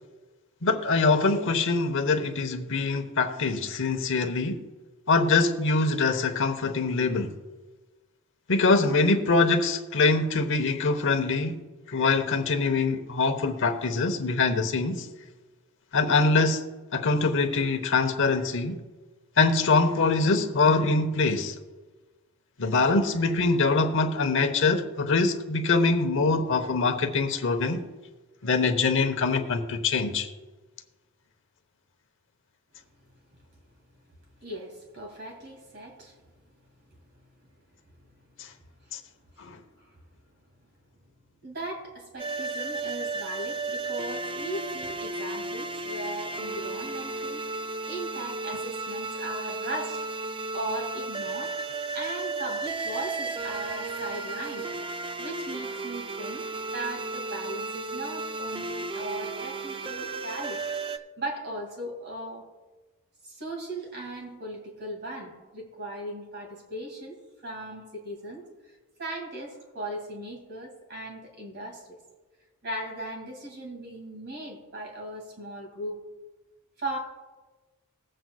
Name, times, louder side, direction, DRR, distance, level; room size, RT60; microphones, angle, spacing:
voice 1, 0.6-4.6 5.1-7.3 8.5-11.5 11.9-15.1 15.9-16.6 16.9-18.8 19.4-21.5 22.6-27.8 28.4-30.3 38.9-39.0 39.4-39.6, left 3 dB, 60° left, 0.9 m, -24 dB
voice 2, 34.4-36.2 39.8-40.0 41.4-47.4 47.8-50.0 50.5-51.5 51.9-54.7 55.2-56.4 56.7-60.6 60.9-62.5 63.2-68.5 69.0-72.0 72.6-76.0 76.8-77.0, right 1 dB, 50° right, 2.4 m, -38 dB
sound 1, 42.2-61.0, right 3 dB, 25° right, 0.4 m, -34 dB
21.0 x 7.7 x 2.3 m
head